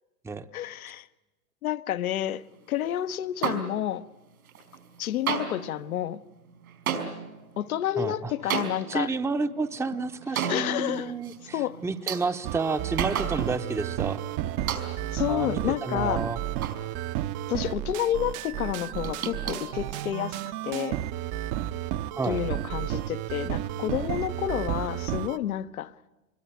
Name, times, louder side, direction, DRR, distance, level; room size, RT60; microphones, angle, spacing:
voice 1, 0.5-1.1 1.6-2.4 2.7-4.0 5.0-6.2 7.6-9.1 10.5-11.1 11.5-11.8 15.1-16.2 17.5-21.0 22.2-25.9, left 12 dB, 75° left, 1.1 m, -30 dB
sound 1, 3.4-4.2 4.4-5.0 5.2-13.8 14.1-14.2 14.7-15.2 15.7-17.4 17.7-18.1 18.5-20.5, right 8 dB, 80° right, 5.0 m, -35 dB
voice 2, 8.0-8.5 8.9-14.2 15.3-16.4 22.1-22.4, right 4 dB, 5° right, 0.8 m, -30 dB
sound 2, 12.4-25.4, right 13 dB, 45° right, 1.0 m, -32 dB
26.0 x 21.5 x 9.0 m
hypercardioid pair, 100°, 43 cm